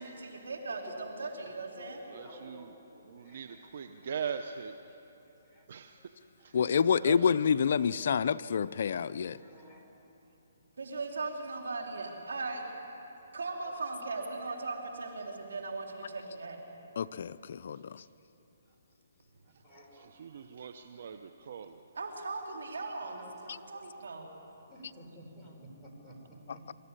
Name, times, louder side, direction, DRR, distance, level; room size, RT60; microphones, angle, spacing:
voice 1, 0.0-2.0 10.8-12.6 13.3-16.6 22.0-24.3, right 3 dB, 85° right, 1 dB, 3.8 m, -38 dB
voice 2, 0.7-4.2 5.5-5.6 6.0-6.1 6.4-6.6 9.3-10.0 13.5-13.7 19.6-20.1 23.1-23.9 24.7-26.6, equal, ahead, -6 dB, 4.2 m, -54 dB
voice 3, 2.1-2.7 3.0-4.8 5.7-6.0 6.4-6.6 6.8-7.4 19.5-19.6 19.9-21.8, right 7 dB, 55° right, 8 dB, 0.9 m, -41 dB
voice 4, 6.5-9.4 17.0-17.8, left 7 dB, 60° left, 15 dB, 0.5 m, -27 dB
25.5 x 14.0 x 9.8 m, 3.0 s
hypercardioid pair, 160°, 0 cm